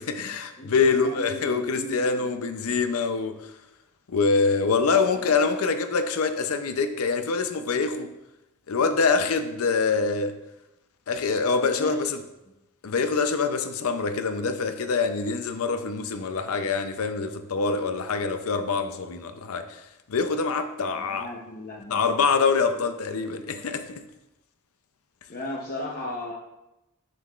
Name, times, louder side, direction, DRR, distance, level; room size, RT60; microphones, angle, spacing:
voice 1, 0.0-3.5 4.1-8.1 8.7-10.3 11.1-12.2 12.8-19.8 20.1-21.3 21.9-24.0, left 4 dB, 75° left, 9 dB, 0.5 m, -25 dB
voice 2, 0.6-2.3 4.9-5.5 11.4-11.9 20.9-22.0 25.3-26.3, left 1 dB, 40° left, -4 dB, 0.8 m, -36 dB
6.8 x 6.7 x 2.4 m, 0.93 s
head